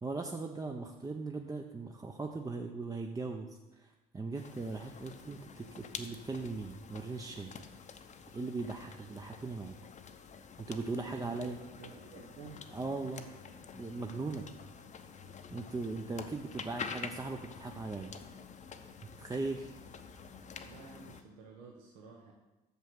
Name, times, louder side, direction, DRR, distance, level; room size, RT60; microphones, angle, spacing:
voice 1, 0.0-3.5 3.7-7.5 8.3-9.7 10.6-11.6 12.7-13.2 13.7-14.5 15.5-18.1 19.2-19.8, right 3 dB, 15° right, 3 dB, 0.6 m, -39 dB
sound 1, 4.3-21.2, left 6 dB, 35° left, 0.7 m, -48 dB
voice 2, 11.0-12.6 20.6-22.3, right 5 dB, 75° right, 0 dB, 1.0 m, -52 dB
6.4 x 5.5 x 6.1 m, 1.1 s
hypercardioid pair, 65°, 21 cm